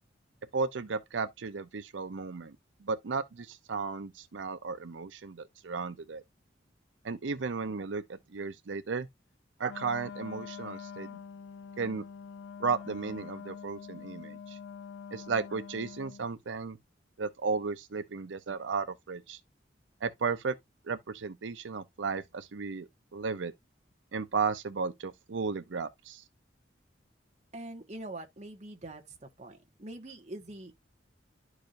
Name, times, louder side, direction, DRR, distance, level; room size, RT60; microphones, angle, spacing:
voice 1, 0.5-2.6 2.8-6.2 7.0-9.1 9.6-11.1 11.8-12.0 12.6-14.6 15.1-16.8 17.2-19.4 20.0-20.6 20.9-23.5 24.1-26.2, right 4 dB, 85° right, 0.6 m, -34 dB
Wind instrument woodwind instrument, 9.6-16.3, left 6 dB, 75° left, 0.4 m, -45 dB
voice 2, 27.5-29.0 29.4-30.7, right 1 dB, 40° right, 1.5 m, -43 dB
11.5 x 4.9 x 2.6 m
head